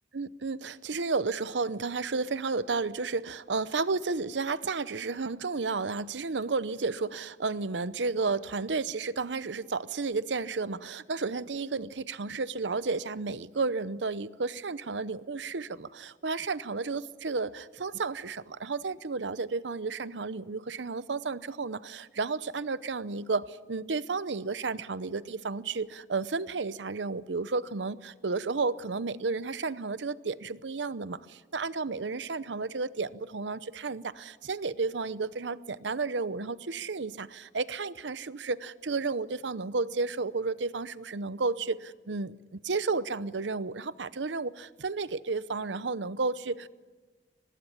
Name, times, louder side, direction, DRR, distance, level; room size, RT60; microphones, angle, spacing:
voice 1, 0.1-46.7, right 4 dB, 85° right, 16 dB, 0.8 m, -32 dB
24.5 x 19.5 x 10.0 m, 1.3 s
head